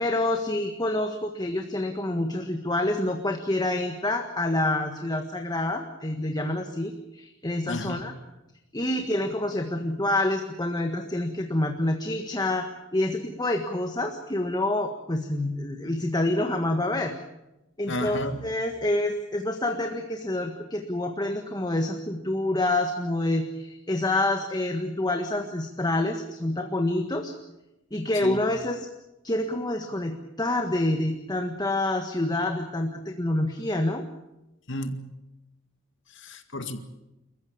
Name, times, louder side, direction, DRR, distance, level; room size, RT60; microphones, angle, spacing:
voice 1, 0.0-8.1 8.7-17.1 17.8-27.3 27.9-28.9 29.2-34.0, left 1 dB, 20° left, 5 dB, 1.6 m, -27 dB
voice 2, 7.7-8.0 17.9-18.4 28.2-28.4 34.7-35.0 36.2-36.8, left 1 dB, 65° left, 8 dB, 2.2 m, -32 dB
29.0 x 14.5 x 8.9 m, 0.95 s
head